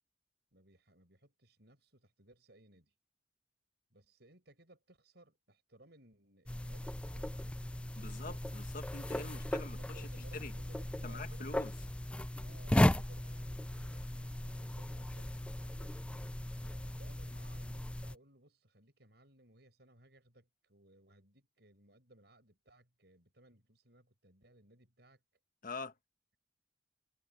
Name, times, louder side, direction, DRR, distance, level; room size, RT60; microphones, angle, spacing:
voice 1, 0.5-2.9 3.9-8.8 9.5-11.7 12.4-16.0 16.6-25.2, right 1 dB, 60° right, 7.4 m, -62 dB
sound 1, 6.5-18.1, left 1 dB, 5° left, 0.3 m, -36 dB
voice 2, 7.9-10.1 10.3-10.5 11.0-11.7 25.6-25.9, left 3 dB, 45° left, 1.5 m, -45 dB
head